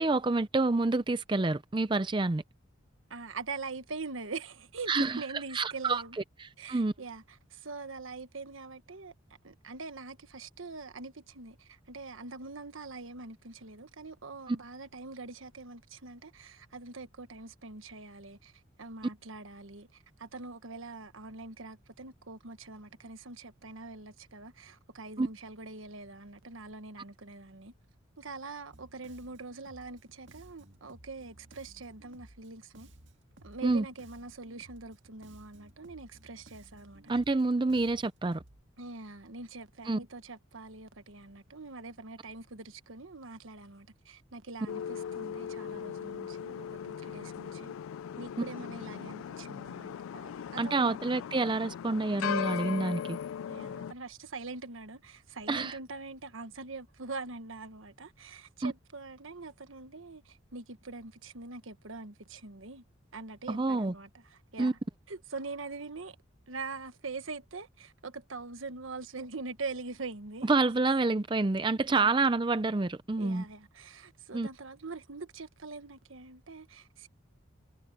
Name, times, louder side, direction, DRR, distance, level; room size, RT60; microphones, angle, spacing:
voice 1, 0.0-2.4 4.9-5.2 5.5-6.0 6.4-6.9 14.5-14.6 25.2-25.3 33.6-33.8 37.1-38.4 39.9-40.0 50.6-53.2 55.5-55.8 58.6-58.7 63.5-63.9 64.6-64.7 70.5-73.4 74.3-74.5, right 3 dB, 25° right, 0.4 m, -28 dB
voice 2, 3.1-6.2 6.6-9.1 9.4-27.7 28.2-32.9 33.4-37.2 38.8-47.7 48.2-51.0 53.5-62.8 63.1-64.8 65.1-66.2 66.5-70.5 71.9-72.1 73.2-77.1, right 3 dB, 80° right, 1.3 m, -43 dB
Bass guitar, 28.7-38.6, right 1 dB, 65° right, 2.0 m, -57 dB
sound 1, 44.7-53.9, left 8 dB, 85° left, 0.3 m, -38 dB
head